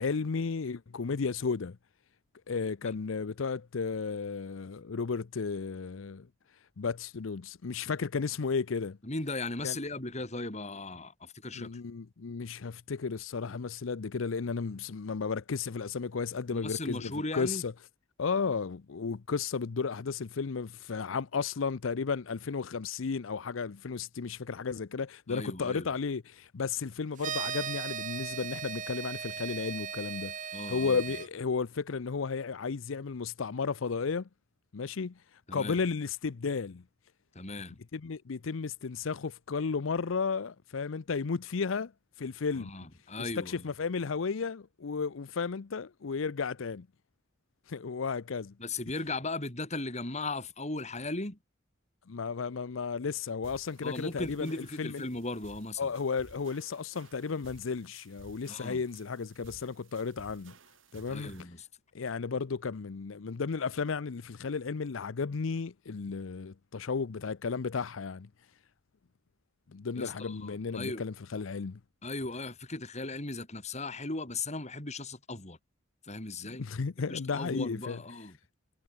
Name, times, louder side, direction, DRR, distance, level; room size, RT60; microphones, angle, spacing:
voice 1, 0.0-1.8 2.5-6.3 6.8-9.0 9.6-9.8 11.5-17.7 18.2-34.3 34.7-36.8 37.9-41.9 42.2-42.7 43.2-46.9 47.7-48.5 52.1-54.5 54.8-55.0 55.8-60.5 60.9-61.5 61.9-68.3 69.7-71.8 76.5-78.0, left 5 dB, 80° left, 0.6 m, -34 dB
voice 2, 9.0-11.8 16.5-17.6 25.3-25.9 30.5-31.0 35.5-35.8 37.3-37.8 42.6-43.7 48.6-51.4 53.8-55.9 58.4-58.8 61.1-61.7 70.0-71.0 72.0-75.6 76.0-76.6 77.1-78.4, left 2 dB, 35° left, 3.5 m, -37 dB
sound 1, 27.2-31.3, right 8 dB, 40° right, 0.8 m, -37 dB
sound 2, 53.4-61.4, right 2 dB, 75° right, 3.6 m, -56 dB
head